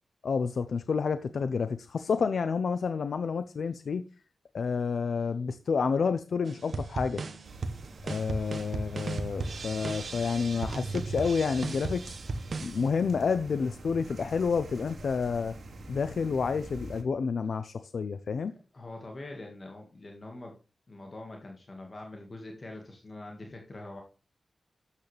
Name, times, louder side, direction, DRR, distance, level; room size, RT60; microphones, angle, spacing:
voice 1, 0.2-4.0 4.5-7.2 8.0-12.1 12.6-15.5 15.9-18.5, left 5 dB, 75° left, 0.6 m, -29 dB
sound 1, 6.5-12.8, right 3 dB, 55° right, 0.9 m, -36 dB
sound 2, 7.4-17.0, right 1 dB, 75° right, 2.3 m, -45 dB
voice 2, 18.7-20.6 20.9-24.0, left 2 dB, 35° left, 1.8 m, -44 dB
12.5 x 8.4 x 3.3 m
wide cardioid pair, 165°, 0 cm